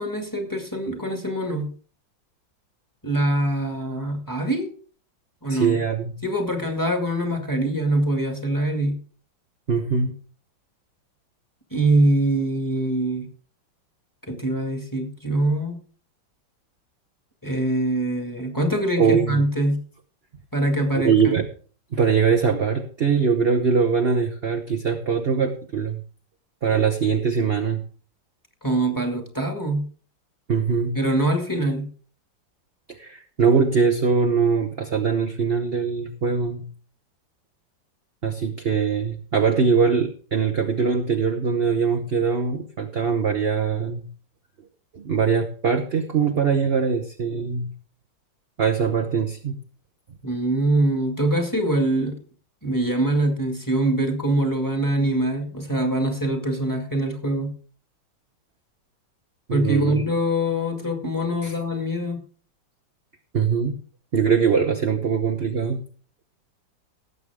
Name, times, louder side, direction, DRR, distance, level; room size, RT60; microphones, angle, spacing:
voice 1, 0.0-1.7 3.0-4.7 5.4-5.8 6.2-9.0 11.7-13.3 14.3-15.8 17.4-19.8 20.5-21.4 28.6-29.9 30.9-31.9 50.2-52.1 52.6-57.5 59.5-62.2, right 1 dB, 10° left, 4 dB, 1.9 m, -23 dB
voice 2, 5.5-6.1 9.7-10.1 19.0-19.4 20.9-21.5 21.9-26.0 26.6-27.8 30.5-31.0 32.9-36.6 38.2-44.0 44.9-47.7 48.6-49.5 59.5-60.1 61.4-61.5 63.3-63.8 64.1-65.8, right 6 dB, 40° right, 3 dB, 0.9 m, -22 dB
17.5 x 8.2 x 3.6 m, 0.42 s
omnidirectional pair, 2.1 m